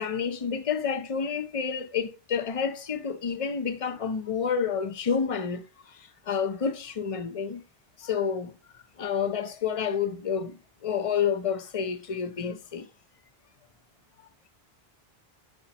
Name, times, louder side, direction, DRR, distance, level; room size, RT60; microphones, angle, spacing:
voice 1, 0.0-5.6 6.3-7.6 8.0-8.5 9.0-10.5 10.8-12.8, left 6 dB, 35° left, 0.7 m, -29 dB
10.0 x 5.1 x 2.9 m
omnidirectional pair, 1.0 m